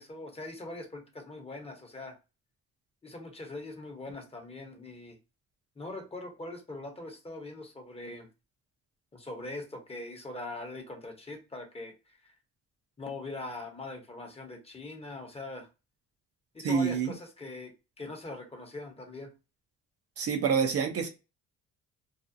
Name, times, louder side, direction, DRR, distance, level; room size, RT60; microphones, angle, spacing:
voice 1, 0.0-2.2 3.0-5.2 5.8-8.3 9.1-12.3 13.0-15.7 16.5-17.7 18.0-19.3, left 2 dB, 20° left, 0.9 m, -42 dB
voice 2, 16.6-17.1 20.2-21.1, right 6 dB, 50° right, 0.6 m, -27 dB
2.5 x 2.1 x 2.5 m
cardioid pair, 90°, 30 cm